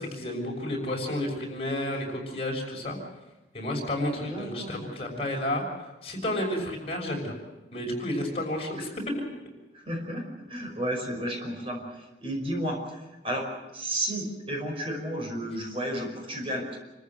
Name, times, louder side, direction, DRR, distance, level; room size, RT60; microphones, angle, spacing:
voice 1, 0.0-3.0 3.5-7.3 7.7-8.9, left 1 dB, 35° left, 0 dB, 6.1 m, -31 dB
voice 2, 4.2-4.8 8.5-8.6 9.7-10.2 10.5-13.5 13.7-16.8, right 1 dB, 30° right, 2 dB, 5.3 m, -32 dB
28.5 x 14.5 x 7.8 m, 1.0 s
head